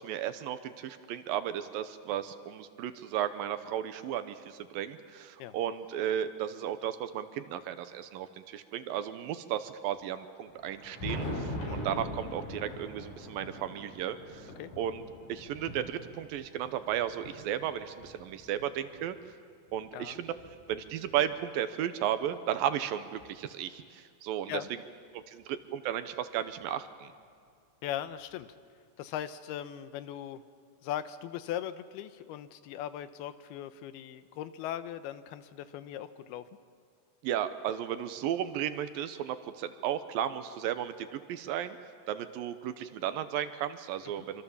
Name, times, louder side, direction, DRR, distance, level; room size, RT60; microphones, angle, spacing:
voice 1, 0.0-14.5 14.8-15.0 15.3-19.2 19.7-20.3 20.7-24.6 25.1-27.1 37.2-41.8 42.1-44.4, right 10 dB, 75° right, 11 dB, 2.5 m, -34 dB
Thunder, 10.5-19.1 19.7-21.4 22.6-22.7 23.2-23.3 25.2-25.3 26.6-26.7 28.3-28.4, left 1 dB, 50° left, 6.7 m, -42 dB
voice 2, 27.8-28.5 29.0-30.4 30.8-36.4 44.2-44.3, left 11 dB, 85° left, 12 dB, 2.9 m, -39 dB
26.5 x 25.0 x 7.2 m, 2.2 s
omnidirectional pair, 4.4 m